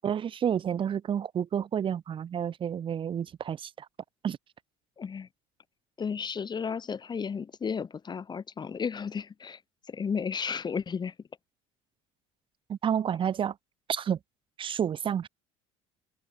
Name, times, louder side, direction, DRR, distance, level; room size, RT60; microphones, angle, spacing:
voice 1, 0.0-3.9 4.2-4.4 12.7-13.6 13.9-14.2 14.6-15.3, right 8 dB, 35° right, 0.7 m, -30 dB
voice 2, 5.0-5.3 6.0-9.6 9.9-11.1, left 6 dB, 30° left, 1.5 m, -33 dB
open air
supercardioid pair, 85°, 15 cm